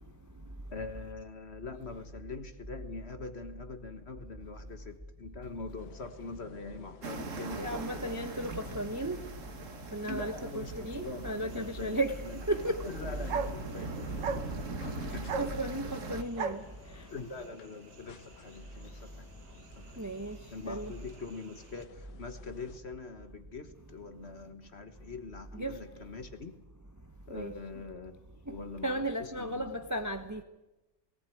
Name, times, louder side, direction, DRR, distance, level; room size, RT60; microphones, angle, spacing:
voice 1, 0.7-8.1 10.1-12.0 12.9-14.4 15.1-15.3 17.1-18.9 19.2-19.3 19.8-20.0 20.5-26.5 27.3-28.1 28.5-29.0 29.4-29.6, left 3 dB, 35° left, 1.5 m, -43 dB
sound 1, 5.8-22.8, left 7 dB, 65° left, 1.5 m, -53 dB
sound 2, 7.0-16.2, right 4 dB, 45° right, 1.6 m, -41 dB
voice 2, 7.6-9.2 9.9-12.2 12.5-12.8 15.1-16.6 16.9-17.0 20.0-20.4 20.6-20.9 25.5-25.8 27.3-27.5 28.5-28.6 28.8-30.4, right 1 dB, 15° right, 0.6 m, -34 dB
sound 3, 11.5-21.8, right 5 dB, 75° right, 1.8 m, -43 dB
18.5 x 18.0 x 9.2 m
omnidirectional pair, 2.0 m